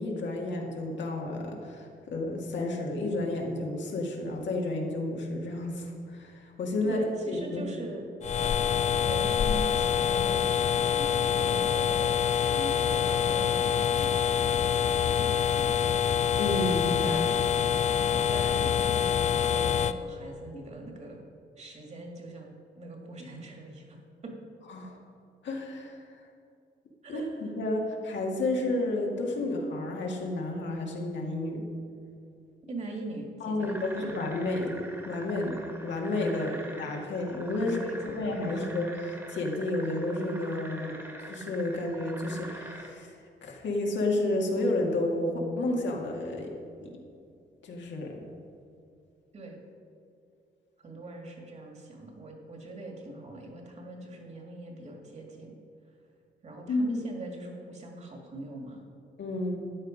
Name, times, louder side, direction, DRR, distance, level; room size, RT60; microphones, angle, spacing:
voice 1, 0.0-7.6 16.4-17.0 24.7-25.0 25.4-26.0 27.1-31.7 33.4-37.8 38.1-41.0 41.3-43.1 43.4-46.5 46.8-46.9 47.6-48.2 56.7-57.0 59.2-59.6, left 2 dB, 85° left, 0 dB, 2.1 m, -31 dB
voice 2, 6.8-8.1 8.9-15.8 17.0-17.4 18.1-18.9 19.4-21.2 21.6-24.0 24.2-24.3 27.0-27.4 32.7-34.2 36.3-36.7 37.6-38.6 49.3-49.6 50.8-55.5 56.4-58.8, right 2 dB, 40° right, 2 dB, 2.0 m, -42 dB
sound 1, 8.2-19.9, left 8 dB, 40° left, 0.4 m, -26 dB
sound 2, 33.6-42.9, right 1 dB, 15° right, 1.5 m, -45 dB
13.0 x 9.8 x 5.2 m, 2.5 s
wide cardioid pair, 160°, 18 cm